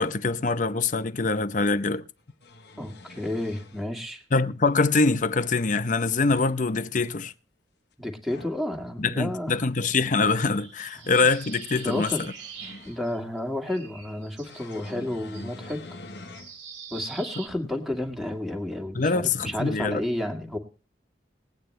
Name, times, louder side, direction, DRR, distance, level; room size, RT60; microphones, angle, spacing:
voice 1, 0.0-2.0 4.3-7.3 9.0-12.1 18.9-20.0, left 3 dB, 45° left, 0.7 m, -24 dB
sound 1, 1.2-1.3 2.2-3.8 4.9-5.6 6.1-6.6 8.1-8.6 9.6-10.5 11.0-13.2 14.4-16.6 17.1-17.2 18.7-18.8, left 2 dB, 65° left, 1.0 m, -46 dB
voice 2, 2.8-4.2 8.0-9.6 11.7-12.3 12.8-15.9 16.9-20.6, left 1 dB, ahead, 1.8 m, -31 dB
sound 2, 10.0-13.4 13.6-17.5, right 6 dB, 85° right, 2.2 m, -44 dB
21.0 x 9.0 x 3.2 m
head